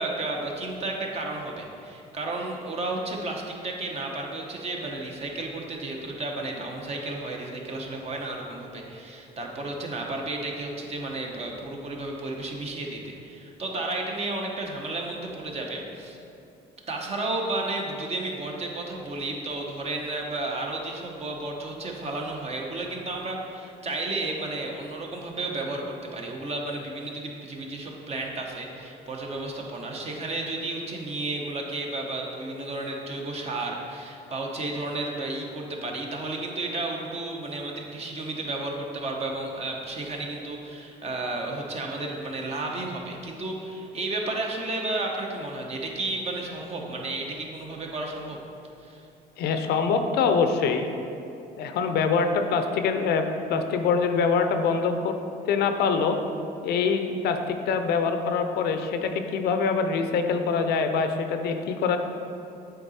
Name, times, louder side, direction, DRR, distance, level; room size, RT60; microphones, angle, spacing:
voice 1, 0.0-16.2 16.9-25.8 26.1-48.4 48.8-49.0, right 2 dB, 40° right, 1 dB, 1.0 m, -32 dB
voice 2, 49.4-50.9 51.6-55.2 55.4-56.2 56.6-62.0, left 5 dB, 70° left, 7 dB, 0.5 m, -24 dB
7.9 x 3.9 x 4.2 m, 2.7 s
cardioid pair, 110°, 17 cm